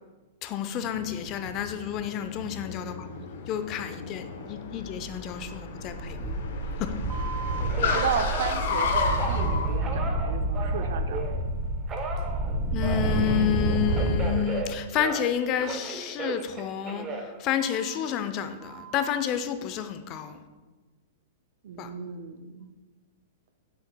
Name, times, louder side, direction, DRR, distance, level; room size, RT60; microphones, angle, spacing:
voice 1, 0.4-3.1 3.5-6.4 6.8-6.9 12.7-20.4 21.8-21.9, left 9 dB, 40° left, 9 dB, 0.5 m, -30 dB
Car, 0.8-9.7, left 5 dB, 65° left, 0.8 m, -33 dB
sound 1, 5.4-5.6 5.9-14.3, right 1 dB, 45° right, 1.1 m, -29 dB
Telephone, 7.1-11.4 11.9-15.3 15.6-18.1 18.6-19.1, right 4 dB, 25° right, 0.8 m, -36 dB
voice 2, 7.8-11.5 21.6-22.7, right 7 dB, 70° right, 8 dB, 0.4 m, -34 dB
7.3 x 5.9 x 2.2 m, 1.2 s
hypercardioid pair, 125°, 0 cm